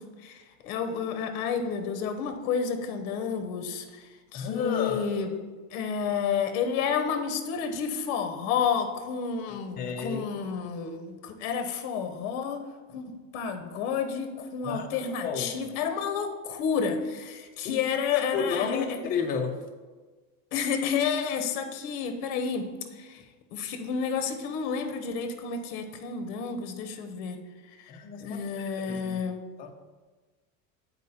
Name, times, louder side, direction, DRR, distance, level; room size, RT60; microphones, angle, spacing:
voice 1, 0.0-5.3 5.7-12.6 12.9-19.0 20.5-23.2 23.5-27.4 27.7-27.9 28.2-29.4, left 6 dB, 50° left, 8 dB, 0.9 m, -30 dB
voice 2, 4.3-5.1 9.8-10.2 14.6-15.5 17.6-17.8 18.1-19.6 27.9-29.2 29.6-29.7, left 6 dB, 20° left, 4 dB, 0.4 m, -31 dB
8.2 x 4.4 x 4.2 m, 1.3 s
supercardioid pair, 155°, 42 cm